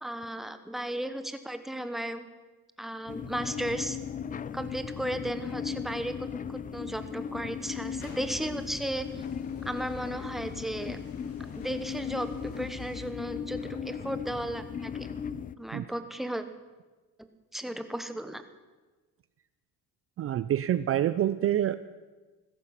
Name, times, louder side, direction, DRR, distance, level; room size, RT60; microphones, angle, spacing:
voice 1, 0.0-2.3 2.8-4.0 4.5-9.1 9.6-11.0 11.5-15.1 15.6-16.4 17.5-18.4, right 1 dB, ahead, 9 dB, 1.0 m, -35 dB
sound 1, 3.1-15.6, left 7 dB, 25° left, 0.4 m, -37 dB
sound 2, 7.6-13.1, left 2 dB, 40° left, 2.9 m, -49 dB
voice 2, 20.2-21.8, right 11 dB, 40° right, 13 dB, 0.5 m, -26 dB
16.0 x 14.0 x 5.8 m, 1.3 s
cardioid pair, 120°, 35 cm